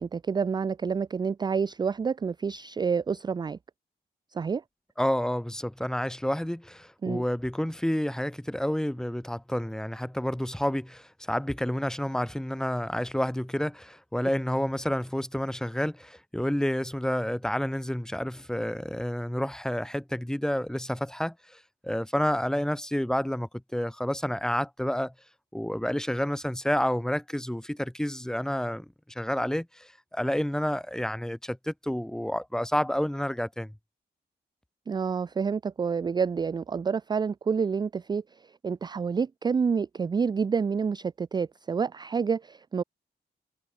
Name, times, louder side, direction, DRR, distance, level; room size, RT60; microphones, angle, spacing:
voice 1, 0.0-3.6 4.3-4.6 7.0-7.2 34.9-42.8, right 6 dB, 25° right, 0.3 m, -28 dB
voice 2, 5.0-25.1 25.5-33.7, equal, 5° left, 1.3 m, -29 dB
wide cardioid pair, 135°, 17 cm